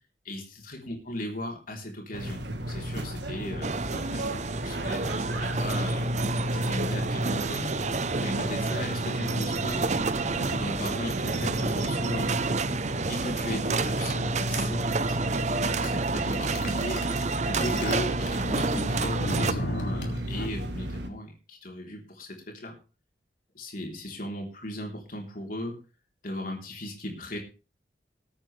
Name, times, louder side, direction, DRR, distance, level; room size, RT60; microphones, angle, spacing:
voice 1, 0.2-2.4 2.7-6.1 6.5-7.7 8.2-9.9 10.3-12.4 13.1-15.2 15.5-22.8 23.5-25.8 26.2-27.4, left 1 dB, 50° left, 1 dB, 3.6 m, -37 dB
sound 1, 2.1-21.1, equal, 75° right, 1.6 m, -33 dB
sound 2, 3.6-19.5, right 4 dB, 40° right, 0.7 m, -30 dB
sound 3, 15.8-15.9 16.2-20.5, left 1 dB, 85° left, 3.1 m, -35 dB
19.5 x 8.8 x 3.3 m, 0.33 s
head